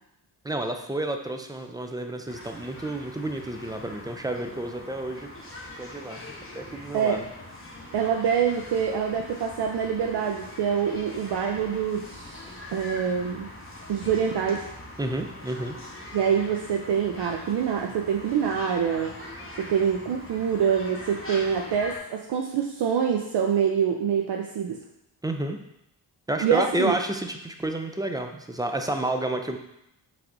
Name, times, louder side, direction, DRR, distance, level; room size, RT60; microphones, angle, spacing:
voice 1, 0.4-5.3 5.8-6.2 6.5-7.3 15.0-15.8 25.2-25.6 26.3-29.6, right 1 dB, 10° right, 5 dB, 0.3 m, -30 dB
sound 1, 2.3-22.0, left 1 dB, 30° left, 1.0 m, -42 dB
voice 2, 7.9-13.5 13.9-14.7 16.1-19.1 19.6-24.8 26.4-26.9, right 7 dB, 65° right, 1 dB, 0.5 m, -25 dB
5.9 x 3.4 x 2.6 m, 0.83 s
cardioid pair, 85°, 44 cm